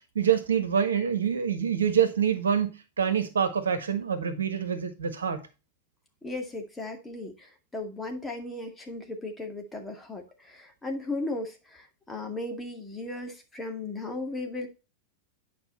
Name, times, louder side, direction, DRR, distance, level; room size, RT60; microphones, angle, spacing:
voice 1, 0.1-5.4, right 8 dB, 70° right, 1.4 m, -26 dB
voice 2, 6.2-14.7, left 2 dB, 10° left, 2.2 m, -36 dB
9.4 x 5.2 x 4.1 m
figure-of-eight pair, 90°, 0 cm